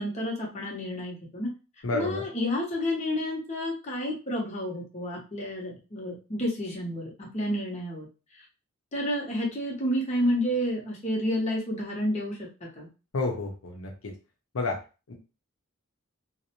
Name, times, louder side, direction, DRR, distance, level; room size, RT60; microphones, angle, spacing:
voice 1, 0.0-1.5 1.9-8.1 8.4-8.5 8.9-12.5 12.8-12.9, equal, 35° left, -2 dB, 0.7 m, -30 dB
voice 2, 1.8-2.2 13.1-14.1 14.5-14.8 15.1-15.2, left 2 dB, 75° left, 1 dB, 0.6 m, -30 dB
2.5 x 2.0 x 2.8 m, 0.31 s
head